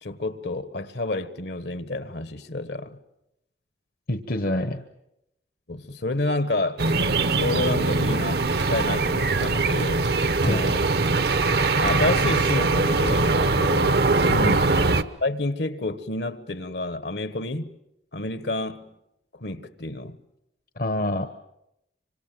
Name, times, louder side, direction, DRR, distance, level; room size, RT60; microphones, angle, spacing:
voice 1, 0.0-3.0 5.7-6.8 7.3-10.1 10.4-10.9 11.8-14.3 15.2-17.7 18.1-18.9 19.3-20.2, left 2 dB, 70° left, 1.4 m, -29 dB
voice 2, 4.1-4.8 10.5-10.6 14.3-14.6 20.8-21.3, left 1 dB, 55° left, 1.0 m, -26 dB
sound 1, 6.8-15.0, right 3 dB, 60° right, 0.9 m, -22 dB
sound 2, 8.6-13.5, right 1 dB, 85° right, 3.5 m, -39 dB
26.0 x 25.5 x 7.7 m
head